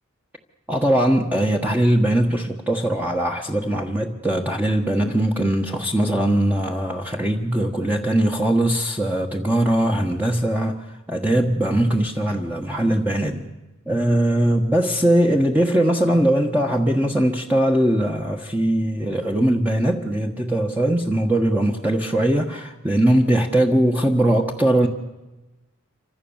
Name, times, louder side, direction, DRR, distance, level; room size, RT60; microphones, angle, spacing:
voice 1, 0.7-13.5 13.9-24.9, right 1 dB, 10° right, 1.4 m, -20 dB
28.0 x 25.5 x 7.3 m
head